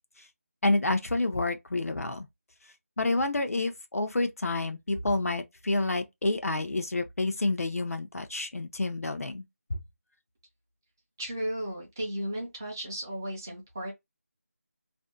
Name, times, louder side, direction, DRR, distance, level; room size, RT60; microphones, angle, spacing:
voice 1, 0.6-2.3 3.0-9.4 9.7-9.8, left 2 dB, 75° left, 0.6 m, -29 dB
voice 2, 11.2-13.9, right 1 dB, 15° right, 0.5 m, -34 dB
2.6 x 2.1 x 2.4 m
figure-of-eight pair, 175°, 8 cm